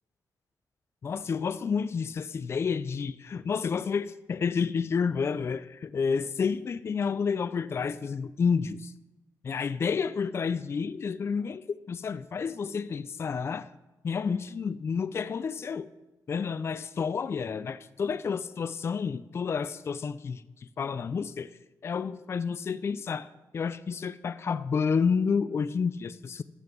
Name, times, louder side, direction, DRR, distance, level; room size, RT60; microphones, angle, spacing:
voice 1, 1.0-8.9 9.4-13.7 14.0-15.9 16.3-20.4 20.8-21.5 21.8-23.3 23.5-26.4, left 6 dB, 40° left, 0.3 m, -30 dB
9.6 x 7.1 x 6.0 m
wide cardioid pair, 120°, 7 cm